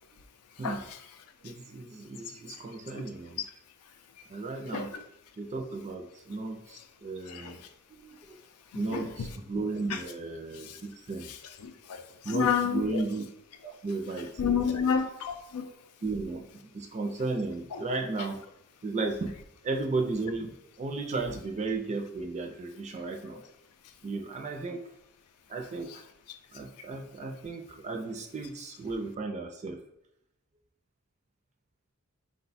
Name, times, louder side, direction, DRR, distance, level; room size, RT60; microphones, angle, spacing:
voice 1, 1.4-3.4 4.3-4.9 5.4-7.6 7.9-8.4 8.7-11.3 12.2-13.2 13.6-14.6 16.0-18.4 18.8-19.3 19.6-20.5 20.8-23.4 24.0-24.8 25.5-26.0 26.5-29.8, right 3 dB, 30° right, 2 dB, 0.4 m, -34 dB
voice 2, 7.3-7.6 8.9-9.1 9.9-10.0 10.5-10.8 11.6-13.0 14.4-15.7 17.7-17.8 23.3-23.4, left 7 dB, 80° left, 7 dB, 0.5 m, -30 dB
4.8 x 2.2 x 4.0 m, 0.77 s
head